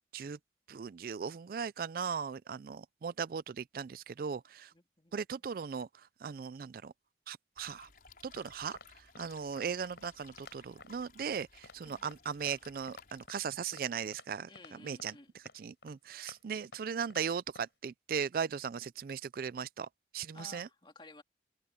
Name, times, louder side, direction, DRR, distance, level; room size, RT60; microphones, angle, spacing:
voice 1, 0.7-4.7 5.1-6.9 7.3-7.9 8.2-19.9 20.1-20.7, right 6 dB, 55° right, 0.3 m, -38 dB
voice 2, 4.7-5.1 11.9-12.1 14.5-15.3 20.3-21.2, left 3 dB, 25° left, 3.2 m, -55 dB
sound 1, 7.6-13.3, left 5 dB, 55° left, 5.9 m, -59 dB
sound 2, 8.4-8.5 8.8-8.9 9.2-9.3 9.6-9.7 10.0-10.1 10.4-10.6 10.8-10.9 11.2-11.3 11.6-11.8 12.0-12.2 12.5-12.6 12.9-13.4 13.7-13.8 14.1-14.3 14.6-14.7 15.0-15.2 15.5-15.6 15.8-15.9 16.3-16.4 16.7-16.8 17.1-17.2 17.6-17.7, left 3 dB, 80° left, 5.7 m, -52 dB
open air
head